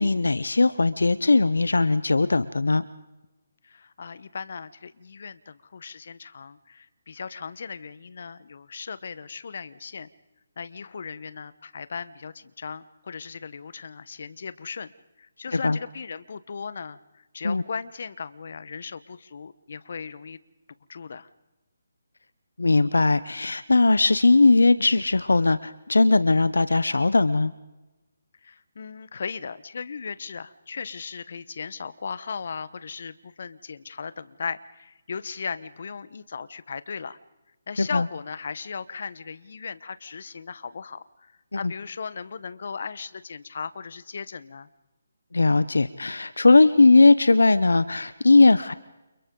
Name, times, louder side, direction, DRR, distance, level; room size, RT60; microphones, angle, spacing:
voice 1, 0.0-2.8 15.5-15.8 17.4-17.6 22.6-27.5 37.8-38.0 45.3-48.7, left 3 dB, 80° left, 15 dB, 0.9 m, -19 dB
voice 2, 3.6-10.1 10.6-14.9 15.2-20.4 20.9-21.3 28.4-37.2 37.7-44.7, left 5 dB, 55° left, 15 dB, 1.2 m, -37 dB
30.0 x 29.0 x 4.0 m, 1.0 s
figure-of-eight pair, 150°, 0 cm